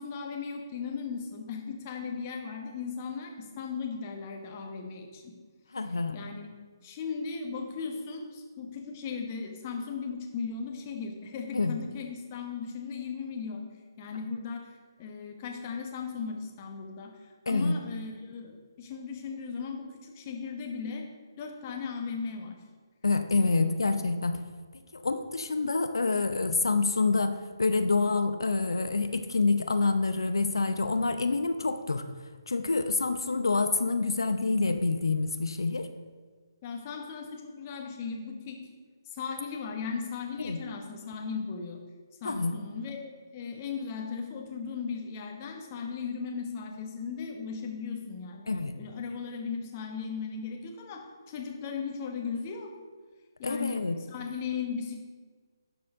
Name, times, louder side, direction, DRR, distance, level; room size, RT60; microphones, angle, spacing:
voice 1, 0.0-5.3 6.1-6.5 6.8-13.7 14.0-14.7 15.0-21.1 21.4-22.6 23.4-23.7 36.6-38.7 39.1-41.8 42.2-48.5 48.8-52.7 53.4-55.0, left 5 dB, 30° left, 2 dB, 1.1 m, -37 dB
voice 2, 5.7-6.1 11.5-11.7 17.5-17.7 23.0-24.4 24.9-32.0 32.5-35.9 40.4-40.6 42.2-42.5 48.5-48.8 53.4-54.0, left 3 dB, 80° left, 9 dB, 0.6 m, -27 dB
12.0 x 4.3 x 3.7 m, 1.5 s
figure-of-eight pair, 145°, 2 cm